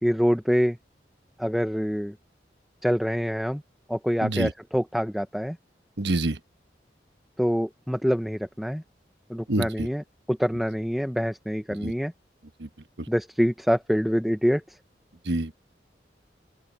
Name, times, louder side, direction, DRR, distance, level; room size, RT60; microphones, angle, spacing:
voice 1, 0.0-0.8 1.4-2.1 2.8-3.6 3.9-5.6 7.4-8.8 9.3-12.1 13.1-14.8, equal, ahead, 0.9 m, -25 dB
voice 2, 4.2-4.5 6.0-6.4 9.5-9.9 11.8-11.9 12.6-12.7 13.0-13.1 15.2-15.5, right 2 dB, 90° right, 1.2 m, -27 dB
open air
head